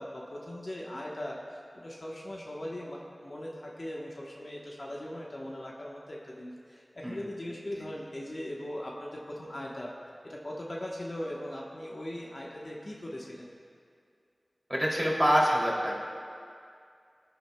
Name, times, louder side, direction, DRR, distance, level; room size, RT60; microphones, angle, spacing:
voice 1, 0.0-9.9 10.2-13.5, left 1 dB, 55° left, -3 dB, 1.1 m, -39 dB
voice 2, 14.7-16.0, equal, 5° right, -6 dB, 2.8 m, -26 dB
17.5 x 10.5 x 2.3 m, 2.3 s
wide cardioid pair, 55°, 0 cm